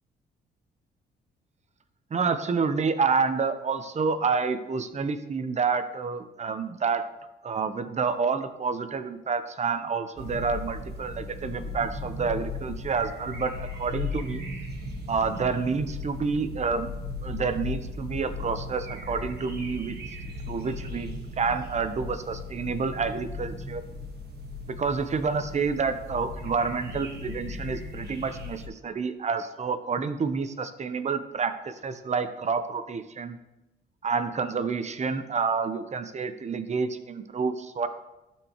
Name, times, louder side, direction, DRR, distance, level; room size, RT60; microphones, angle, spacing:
voice 1, 2.1-7.0 7.4-14.5 15.1-16.9 17.2-19.9 20.5-23.8 24.8-33.4 34.0-37.9, right 5 dB, 35° right, 10 dB, 0.7 m, -28 dB
sound 1, 10.2-28.7, left 3 dB, 55° right, 1.3 m, -37 dB
12.0 x 4.6 x 2.9 m, 1.0 s
cardioid pair, 90°, 20 cm